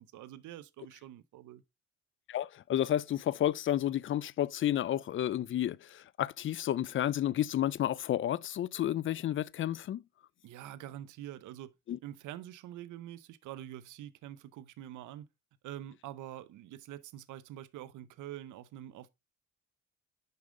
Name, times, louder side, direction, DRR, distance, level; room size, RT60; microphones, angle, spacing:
voice 1, 0.0-1.6 10.4-11.7 12.0-15.3 15.6-19.1, right 12 dB, 80° right, 0.7 m, -46 dB
voice 2, 2.3-10.0 11.9-12.0, left 11 dB, 45° left, 0.4 m, -31 dB
6.7 x 5.2 x 3.7 m
cardioid pair, 90°, 30 cm